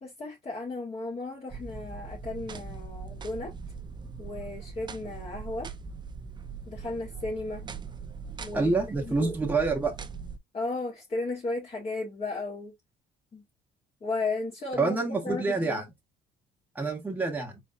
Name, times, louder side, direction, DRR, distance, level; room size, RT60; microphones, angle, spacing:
voice 1, 0.0-3.5 4.2-5.7 6.7-7.6 8.4-8.7 9.1-9.4 10.5-12.7 13.3-13.4 14.0-15.8, left 3 dB, 35° left, 1.8 m, -34 dB
sound 1, 1.5-10.4, right 5 dB, 25° right, 0.6 m, -41 dB
voice 2, 8.5-9.9 14.7-15.9 16.7-17.6, right 3 dB, 10° right, 1.2 m, -27 dB
4.4 x 4.0 x 2.5 m
cardioid pair, 110°, 17 cm